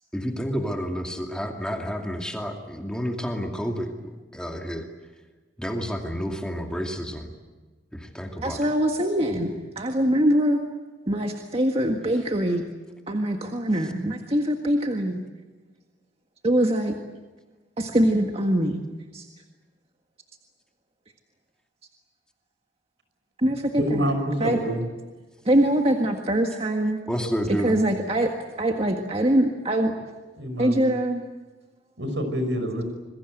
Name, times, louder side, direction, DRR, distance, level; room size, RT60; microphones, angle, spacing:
voice 1, 0.1-3.9 4.3-4.9 5.6-7.3 7.9-8.7 27.1-27.7, equal, 5° left, 2 dB, 2.5 m, -30 dB
voice 2, 8.4-10.6 11.1-12.6 13.1-15.2 16.4-16.9 17.8-18.8 19.1-19.3 23.4-24.1 24.4-24.6 25.4-27.0 27.6-29.9 30.6-31.2, right 1 dB, 35° right, 3 dB, 1.7 m, -23 dB
voice 3, 23.8-24.9 30.4-30.9 32.0-32.8, equal, 80° right, 7 dB, 5.8 m, -27 dB
27.0 x 22.0 x 7.9 m, 1.3 s
head